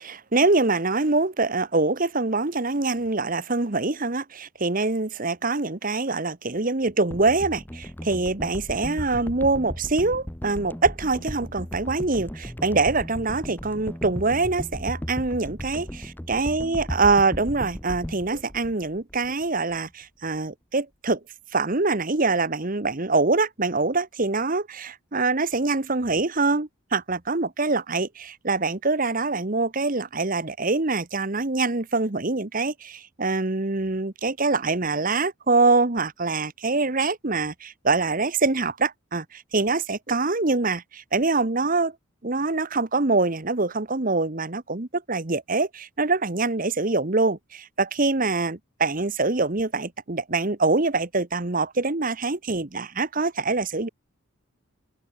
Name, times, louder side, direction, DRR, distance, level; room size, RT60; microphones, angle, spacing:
voice 1, 0.0-21.2 21.5-41.9 42.2-53.9, right 3 dB, 40° right, 1.2 m, -24 dB
sound 1, 7.1-19.4 19.7-19.9, equal, 10° left, 0.9 m, -36 dB
open air
head